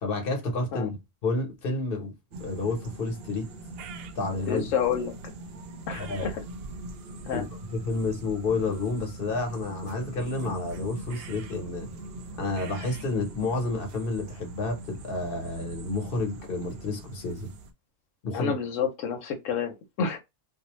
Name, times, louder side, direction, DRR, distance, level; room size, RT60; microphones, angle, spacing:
voice 1, 0.0-1.0 1.2-2.1 2.4-3.5 4.1-4.7 6.0-6.3 7.3-7.4 7.7-11.9 12.4-17.5 18.2-18.6, left 3 dB, 50° left, 1.1 m, -30 dB
sound 1, 2.3-17.7, right 2 dB, 65° right, 0.6 m, -42 dB
voice 2, 4.5-5.1 5.9-6.4 7.2-7.4 18.3-20.2, left 6 dB, 85° left, 1.0 m, -29 dB
2.6 x 2.1 x 3.0 m
omnidirectional pair, 1.3 m